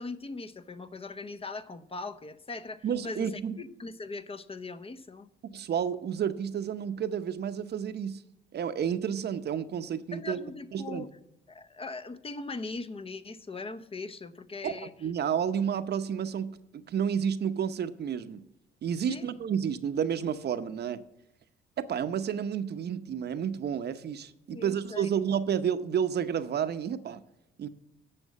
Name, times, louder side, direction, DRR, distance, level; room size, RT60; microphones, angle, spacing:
voice 1, 0.0-3.3 3.6-5.3 10.1-11.1 11.5-14.9 19.1-19.3 24.5-25.1, left 3 dB, 30° left, 12 dB, 0.7 m, -40 dB
voice 2, 2.8-3.6 5.4-8.2 8.5-10.4 10.7-11.1 14.6-14.7 15.0-18.4 18.8-21.0 21.8-27.2 27.6-27.7, right 8 dB, 55° right, 11 dB, 0.8 m, -31 dB
10.0 x 6.3 x 8.3 m, 0.86 s
cardioid pair, 90°, 20 cm